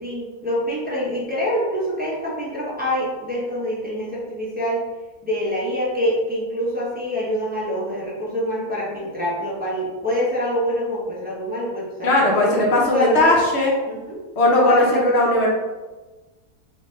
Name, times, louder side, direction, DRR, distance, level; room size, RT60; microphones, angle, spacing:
voice 1, 0.0-4.8 5.2-12.5 12.9-13.3 13.9-14.2 14.6-15.5, equal, 10° right, -7 dB, 0.4 m, -25 dB
voice 2, 12.0-13.7 14.4-15.5, left 1 dB, 50° left, -2 dB, 1.0 m, -18 dB
4.1 x 2.8 x 3.1 m, 1.2 s
omnidirectional pair, 1.7 m